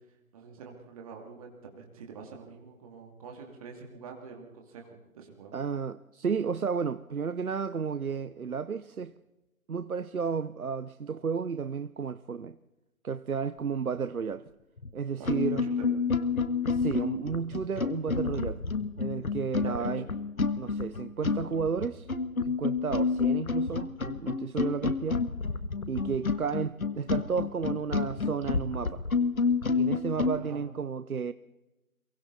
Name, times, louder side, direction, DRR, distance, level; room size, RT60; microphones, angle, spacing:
voice 1, 0.3-5.5 15.2-15.9 19.6-19.9 30.4-30.6, right 5 dB, 25° right, 2.7 m, -46 dB
voice 2, 5.5-9.1 9.7-12.6 13.0-14.4 14.9-15.7 16.7-18.6 19.0-20.0 20.6-22.1 22.4-25.2 25.9-29.0 29.7-31.3, right 6 dB, 80° right, 0.8 m, -32 dB
sound 1, 14.8-14.9 15.2-30.4, left 4 dB, 75° left, 1.6 m, -29 dB
27.5 x 24.0 x 4.1 m
figure-of-eight pair, 150°, 43 cm